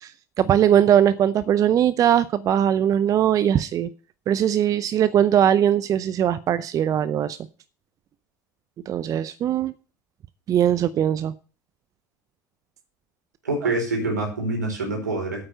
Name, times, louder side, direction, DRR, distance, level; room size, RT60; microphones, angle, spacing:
voice 1, 0.4-3.9 4.3-7.4 8.9-9.7 10.5-11.3, right 10 dB, 40° right, 0.6 m, -20 dB
voice 2, 13.4-15.4, right 2 dB, 85° right, 4.7 m, -26 dB
8.8 x 8.8 x 6.8 m
figure-of-eight pair, 70°, 9 cm